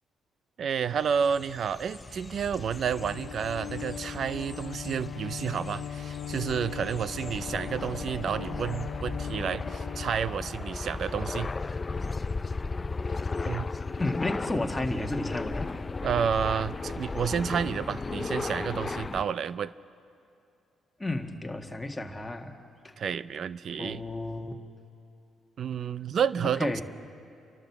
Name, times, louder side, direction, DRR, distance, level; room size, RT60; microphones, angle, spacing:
voice 1, 0.6-11.5 13.4-13.7 16.0-19.7 23.0-24.0 25.6-26.8, right 7 dB, 60° right, 16 dB, 0.6 m, -30 dB
sound 1, 0.6-8.2, equal, 80° right, 5.9 m, -61 dB
sound 2, 0.9-19.2, left 3 dB, 25° left, 0.5 m, -36 dB
Bowed string instrument, 2.5-10.9, left 9 dB, 70° left, 1.3 m, -40 dB
voice 2, 14.0-15.7 21.0-22.6 22.8-22.9 23.7-24.5 26.6-26.8, left 2 dB, 10° left, 2 dB, 1.8 m, -32 dB
29.5 x 12.0 x 7.3 m, 2.6 s
cardioid pair, 90°, 0 cm